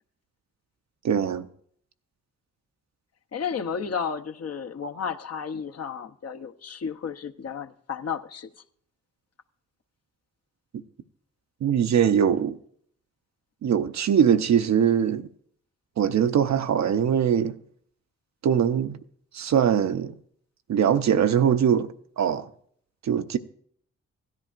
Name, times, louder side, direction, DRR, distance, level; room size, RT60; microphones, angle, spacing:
voice 1, 1.0-1.5 11.6-12.6 13.6-15.3 16.0-17.5 18.4-19.0 19.3-20.1 20.7-21.9 22.2-22.5 23.0-23.4, right 8 dB, 60° right, 0.7 m, -22 dB
voice 2, 3.3-8.5, left 6 dB, 50° left, 0.8 m, -32 dB
16.0 x 11.0 x 2.5 m
supercardioid pair, 45°, 32 cm